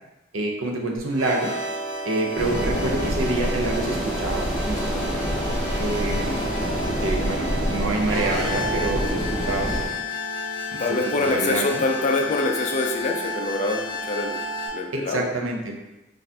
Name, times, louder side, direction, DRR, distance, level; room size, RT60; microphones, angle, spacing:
voice 1, 0.3-1.5 2.0-5.3 5.8-6.4 7.0-9.7 10.7-11.8 14.9-15.8, right 2 dB, 80° right, 1 dB, 0.6 m, -27 dB
sound 1, 1.0-14.7, left 1 dB, 45° right, 1.5 m, -32 dB
sound 2, 2.4-9.9, equal, ahead, 1.2 m, -27 dB
voice 2, 10.8-14.4 14.7-15.3, left 2 dB, 35° left, 2 dB, 0.4 m, -25 dB
4.1 x 2.5 x 2.7 m, 0.97 s
head